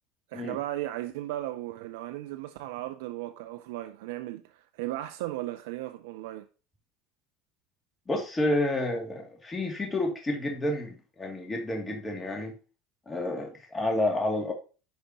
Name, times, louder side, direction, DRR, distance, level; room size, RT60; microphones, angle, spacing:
voice 1, 0.3-6.5, right 15 dB, 75° right, 0.5 m, -36 dB
voice 2, 8.1-12.5 13.1-14.5, left 1 dB, 20° left, 2.5 m, -30 dB
10.5 x 5.1 x 2.9 m
hypercardioid pair, 80°, 0 cm